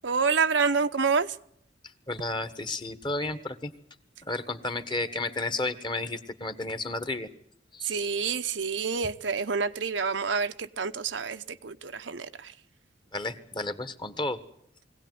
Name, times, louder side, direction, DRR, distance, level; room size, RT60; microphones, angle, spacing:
voice 1, 0.0-1.3 7.8-12.5, right 5 dB, 80° right, 9 dB, 0.9 m, -28 dB
voice 2, 2.1-3.7 4.3-7.3 7.7-8.1 13.1-14.4, left 2 dB, 25° left, 11 dB, 1.4 m, -32 dB
22.5 x 17.5 x 9.4 m, 0.72 s
head